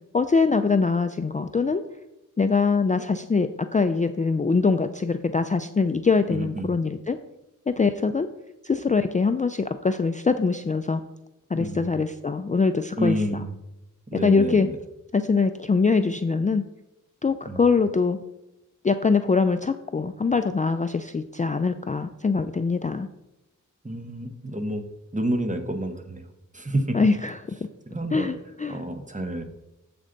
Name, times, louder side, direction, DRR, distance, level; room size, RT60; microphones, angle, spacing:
voice 1, 0.1-1.8 2.4-7.2 7.7-8.3 8.6-11.0 11.5-13.4 14.1-14.7 15.1-16.6 17.2-18.2 18.8-23.1 26.9-27.4 28.1-28.8, left 4 dB, 25° left, 9 dB, 0.3 m, -23 dB
voice 2, 6.3-6.7 11.5-12.0 13.0-13.5 14.1-14.8 17.5-17.6 23.8-24.9 25.1-26.3 26.5-27.0 27.9-28.3 28.7-29.4, right 1 dB, 25° right, 6 dB, 1.0 m, -29 dB
7.8 x 7.4 x 3.9 m, 0.93 s
wide cardioid pair, 85°, 32 cm